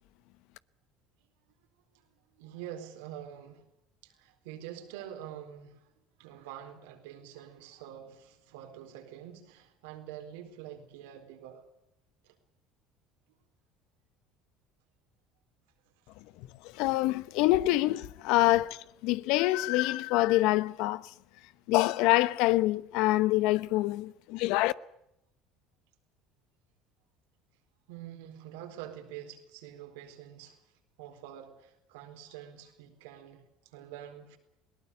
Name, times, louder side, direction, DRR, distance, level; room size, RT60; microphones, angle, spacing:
voice 1, 2.3-3.7 4.0-5.9 6.2-11.6 12.2-12.4 16.0-16.1 27.9-34.4, right 10 dB, 80° right, 4.2 m, -46 dB
voice 2, 16.4-21.1 21.7-24.7, left 17 dB, 70° left, 0.8 m, -26 dB
21.0 x 19.0 x 8.2 m
hypercardioid pair, 80°, 0 cm